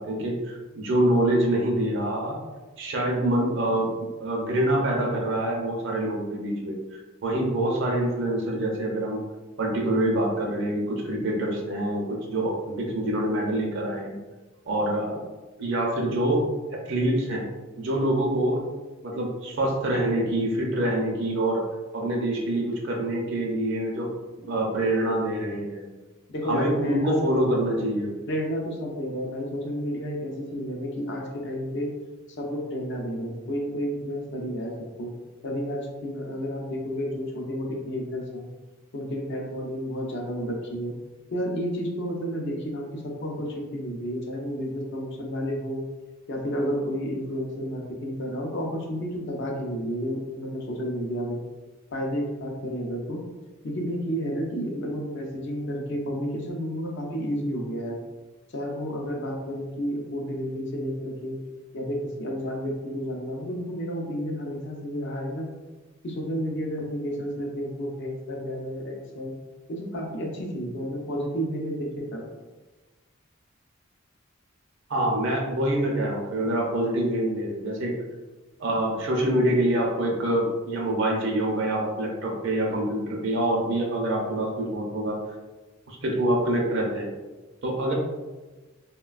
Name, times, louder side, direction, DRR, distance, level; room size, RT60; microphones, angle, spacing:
voice 1, 0.0-2.4 2.8-3.9 4.2-9.2 9.6-14.2 14.7-15.2 15.6-16.4 16.9-17.5 17.8-18.6 19.0-21.6 21.9-24.1 24.4-25.8 26.5-28.1 74.9-77.9 78.6-85.2 85.9-87.1 87.6-87.9, right 1 dB, 60° right, -1 dB, 0.5 m, -25 dB
voice 2, 26.3-27.4 28.3-31.9 32.4-34.7 35.0-35.1 35.4-38.5 38.9-40.9 41.3-45.8 46.3-51.4 51.9-53.2 53.6-58.0 58.5-61.4 61.7-65.5 66.0-69.3 69.7-72.3, equal, 60° left, 0 dB, 0.5 m, -31 dB
3.1 x 2.1 x 2.3 m, 1.2 s
head